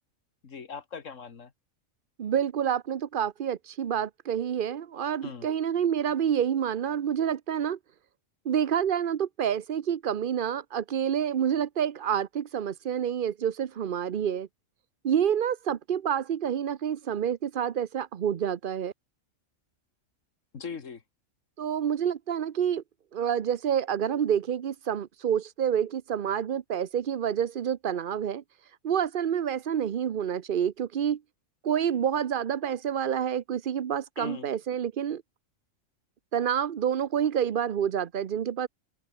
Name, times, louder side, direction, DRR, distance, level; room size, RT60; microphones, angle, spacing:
voice 1, 0.4-1.5 5.2-5.5 20.5-21.0 34.2-34.5, left 6 dB, 75° left, 2.0 m, -40 dB
voice 2, 2.2-7.8 8.4-14.5 15.0-18.9 21.6-22.8 23.1-28.4 28.8-31.2 31.6-35.2 36.3-38.7, right 9 dB, 50° right, 0.8 m, -28 dB
omnidirectional pair, 1.3 m